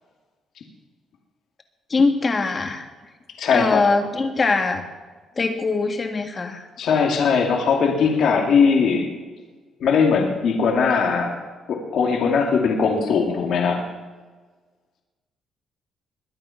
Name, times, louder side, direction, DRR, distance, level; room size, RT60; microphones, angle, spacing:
voice 1, 1.9-2.9 3.5-4.8 5.4-6.7, left 3 dB, 35° left, 6 dB, 2.0 m, -22 dB
voice 2, 3.4-3.8 6.8-9.1 9.8-11.4 11.7-13.9, left 5 dB, 70° left, 2 dB, 2.4 m, -20 dB
21.5 x 9.1 x 5.8 m, 1.4 s
cardioid pair, 90°, 0 cm